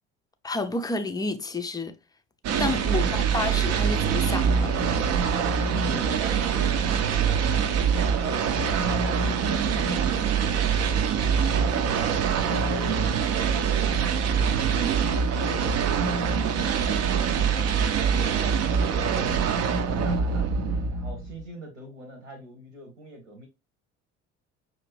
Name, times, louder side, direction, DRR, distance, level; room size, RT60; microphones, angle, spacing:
voice 1, 0.4-1.9 2.6-4.7, left 3 dB, 10° left, 0.5 m, -30 dB
sound 1, 2.4-21.5, right 6 dB, 45° right, 0.6 m, -24 dB
voice 2, 5.8-7.8 8.2-8.8 12.0-13.1 15.5-18.8 19.1-20.5 20.9-23.5, right 1 dB, 80° right, 1.2 m, -42 dB
5.8 x 2.6 x 3.2 m
figure-of-eight pair, 60°, 37 cm